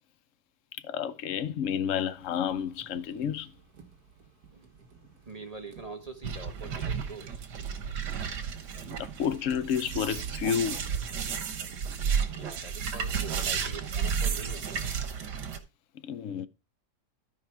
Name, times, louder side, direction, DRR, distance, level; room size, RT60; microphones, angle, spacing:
voice 1, 0.8-3.5 9.0-10.8 16.0-16.5, left 8 dB, 60° left, 1.0 m, -30 dB
sound 1, 2.1-13.6, right 5 dB, 65° right, 2.1 m, -55 dB
voice 2, 5.3-7.4 12.3-14.9, right 3 dB, 25° right, 1.0 m, -44 dB
sound 2, 6.2-15.6, right 6 dB, 90° right, 1.8 m, -32 dB
13.5 x 4.9 x 4.6 m
omnidirectional pair, 1.7 m